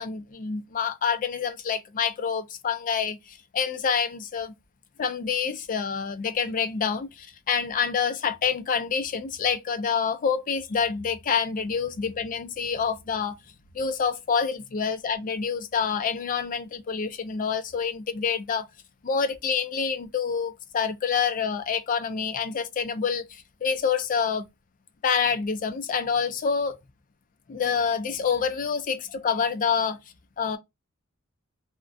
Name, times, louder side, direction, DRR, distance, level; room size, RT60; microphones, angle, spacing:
voice 1, 0.0-4.5 5.0-13.3 13.7-18.7 19.0-24.5 25.0-26.8 27.5-30.0 30.4-30.6, left 6 dB, 40° left, 0.4 m, -27 dB
2.3 x 2.1 x 2.5 m
head